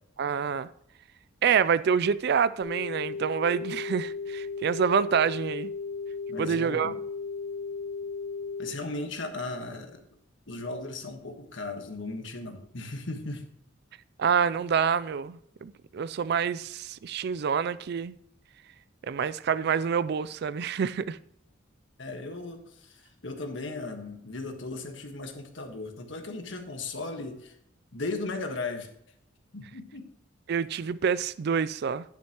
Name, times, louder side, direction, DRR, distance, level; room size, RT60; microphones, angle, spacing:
voice 1, 0.2-0.7 1.4-5.7 6.4-6.9 14.2-18.2 19.1-21.2 30.5-32.0, right 7 dB, 55° right, 0.4 m, -27 dB
sound 1, 2.6-8.7, left 4 dB, 25° left, 1.6 m, -35 dB
voice 2, 6.3-7.0 8.6-10.0 10.5-13.5 22.0-27.6 27.9-28.9 29.5-30.1, left 2 dB, 65° left, 1.5 m, -37 dB
10.5 x 9.3 x 3.0 m
head